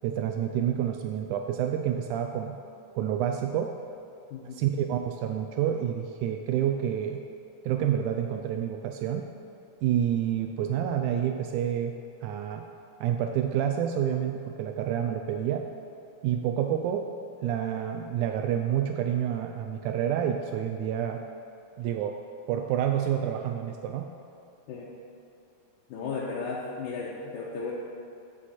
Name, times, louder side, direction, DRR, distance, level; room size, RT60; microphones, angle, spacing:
voice 1, 0.0-2.6 3.0-3.7 4.5-7.2 7.6-9.3 9.8-11.9 12.2-12.7 13.0-15.7 16.2-17.1 17.4-21.2 21.8-22.2 22.5-24.1, right 9 dB, 80° right, 4 dB, 1.9 m, -28 dB
voice 2, 4.3-4.7 24.7-24.9 25.9-27.7, left 4 dB, 85° left, -5 dB, 2.5 m, -35 dB
15.0 x 6.4 x 4.2 m, 2.7 s
omnidirectional pair, 3.6 m